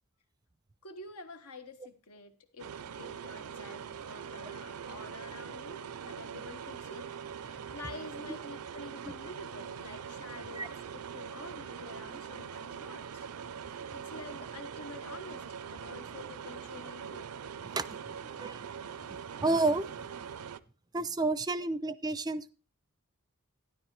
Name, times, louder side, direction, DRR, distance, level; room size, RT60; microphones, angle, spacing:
voice 1, 0.8-7.1 7.4-13.2 13.9-17.4 21.6-21.7, left 3 dB, 85° left, 1.3 m, -48 dB
sound 1, 2.6-20.6, right 7 dB, 85° right, 0.5 m, -43 dB
voice 2, 17.7-18.7 19.4-19.8 20.9-22.5, right 3 dB, 15° right, 0.4 m, -31 dB
12.5 x 10.5 x 3.2 m
head